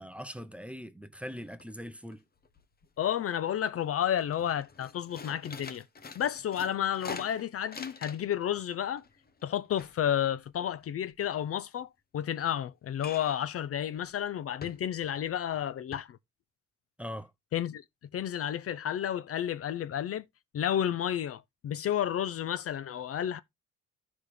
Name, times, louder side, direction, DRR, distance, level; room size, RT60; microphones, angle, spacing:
voice 1, 0.0-2.2 17.0-17.3, equal, 5° right, 0.6 m, -41 dB
sound 1, 1.6-2.1 2.4-3.2 3.6-3.8 4.1-8.4 8.7-11.1 13.0-13.5 13.9-14.1 14.6-15.2 15.5-15.6 15.9-16.0, left 4 dB, 30° left, 1.0 m, -46 dB
voice 2, 3.0-5.8 6.1-9.0 9.4-16.2 17.5-17.8 18.1-20.2 20.5-23.4, left 10 dB, 50° left, 0.5 m, -31 dB
13.0 x 5.1 x 3.2 m
cardioid pair, 90°, 30 cm